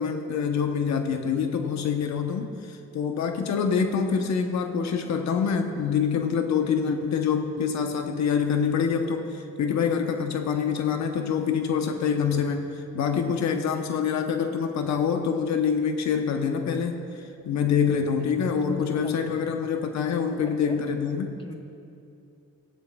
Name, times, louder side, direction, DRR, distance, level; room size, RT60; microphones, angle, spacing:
voice 1, 0.0-21.3, left 6 dB, 65° left, 5 dB, 0.9 m, -26 dB
voice 2, 18.5-19.4 20.4-20.8 21.4-21.5, left 1 dB, 15° left, 3 dB, 1.2 m, -41 dB
16.0 x 13.0 x 2.3 m, 2.6 s
cardioid pair, 90°, 30 cm